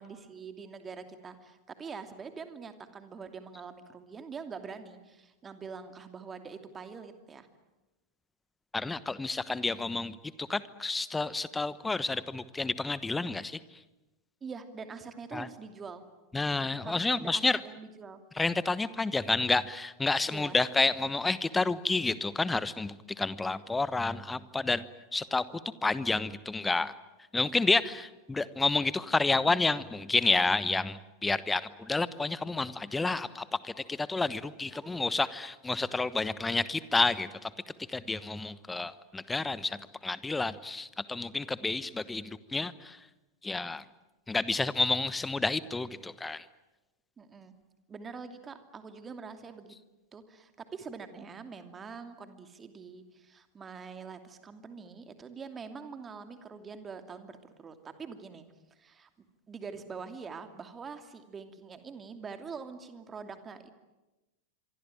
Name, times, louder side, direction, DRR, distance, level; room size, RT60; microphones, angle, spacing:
voice 1, 0.0-7.5 14.4-16.0 16.8-18.2 20.3-20.6 34.7-35.0 47.2-47.5 47.9-49.7 50.1-58.5 58.7-59.1 59.5-63.7, right 5 dB, 20° right, 8 dB, 2.7 m, -44 dB
voice 2, 8.7-13.6 15.3-15.5 16.3-17.6 18.4-24.8 25.1-26.9 27.3-37.5 37.9-43.0 43.4-43.8 44.3-46.4, left 3 dB, 10° left, 17 dB, 1.1 m, -30 dB
26.0 x 24.5 x 9.0 m, 1.1 s
figure-of-eight pair, 90°, 0 cm